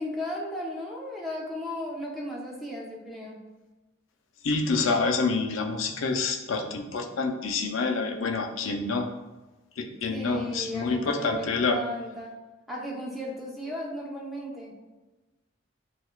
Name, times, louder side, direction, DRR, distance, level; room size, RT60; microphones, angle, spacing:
voice 1, 0.0-3.4 10.1-12.3 12.7-14.7, left 1 dB, ahead, -5 dB, 0.6 m, -35 dB
voice 2, 4.4-9.1 9.8-11.8, left 4 dB, 80° left, 4 dB, 0.4 m, -27 dB
6.3 x 2.3 x 2.3 m, 1.1 s
head